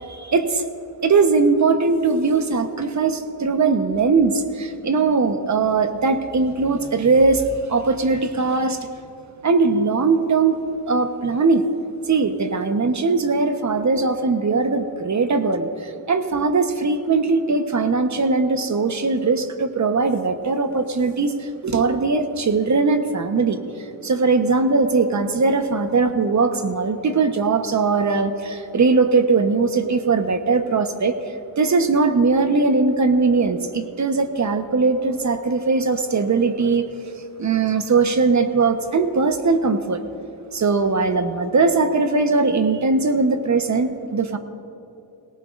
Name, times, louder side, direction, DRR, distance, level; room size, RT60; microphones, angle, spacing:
voice 1, 0.1-0.6 1.0-8.8 9.4-10.6 10.9-11.6 12.1-23.6 24.0-31.2 31.6-36.9 37.4-40.0 40.5-44.4, right 4 dB, 40° right, 8 dB, 1.2 m, -20 dB
22.0 x 18.0 x 2.6 m, 2.9 s
cardioid pair, 75°, 46 cm